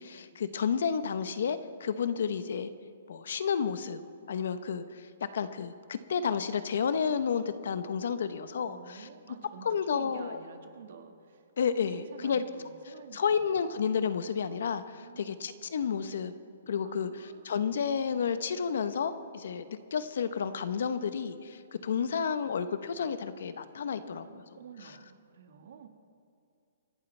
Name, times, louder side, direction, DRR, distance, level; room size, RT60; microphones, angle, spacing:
voice 1, 0.0-2.7 3.1-4.0 4.3-9.1 9.6-10.4 11.6-12.4 13.1-16.3 16.7-19.7 19.9-24.4, left 6 dB, 65° left, 11 dB, 0.9 m, -31 dB
voice 2, 8.7-11.4 11.9-13.6 15.0-15.4 16.8-17.6 24.1-25.9, right 6 dB, 60° right, 6 dB, 1.6 m, -50 dB
26.5 x 11.5 x 3.4 m, 2.4 s
hypercardioid pair, 165°, 0 cm